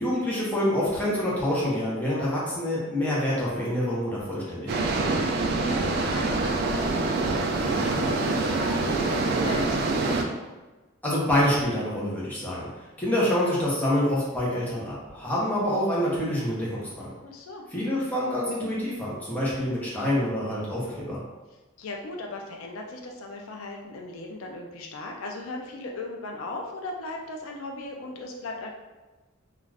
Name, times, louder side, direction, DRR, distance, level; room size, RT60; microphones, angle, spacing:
voice 1, 0.0-5.2 11.0-17.1 17.7-21.2, left 1 dB, 10° left, -7 dB, 0.8 m, -27 dB
sound 1, 4.7-10.2, right 3 dB, 50° right, 0.3 m, -25 dB
voice 2, 5.5-9.8 17.2-17.6 21.8-28.7, left 2 dB, 75° left, 1 dB, 0.4 m, -37 dB
2.4 x 2.4 x 3.3 m, 1.2 s
head